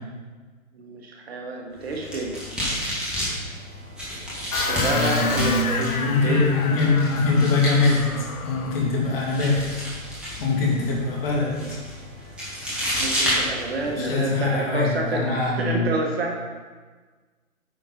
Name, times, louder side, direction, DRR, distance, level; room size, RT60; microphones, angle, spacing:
voice 1, 0.7-2.4 4.7-6.6 13.0-16.4, right 2 dB, 45° right, 1 dB, 1.3 m, -28 dB
sound 1, 1.8-14.1, equal, ahead, 1.6 m, -31 dB
sound 2, 4.5-8.9, left 4 dB, 85° left, 1.0 m, -31 dB
voice 2, 4.9-9.8 10.4-11.8 14.0-15.9, left 3 dB, 45° left, -3 dB, 2.7 m, -23 dB
8.7 x 6.0 x 4.2 m, 1.4 s
figure-of-eight pair, 140°, 42 cm